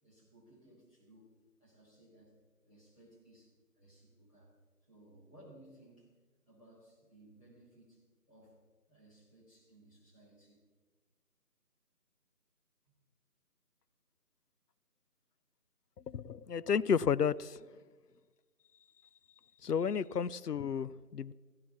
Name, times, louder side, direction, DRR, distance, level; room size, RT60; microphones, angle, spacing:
voice 1, 0.0-2.4 2.6-4.5 4.9-6.1 6.5-10.6 12.8-12.9, right 1 dB, 20° left, -5 dB, 4.5 m, -61 dB
voice 2, 16.1-17.6 19.6-21.3, left 7 dB, 80° left, 18 dB, 0.6 m, -32 dB
15.5 x 11.0 x 7.1 m, 1.3 s
figure-of-eight pair, 170°, 46 cm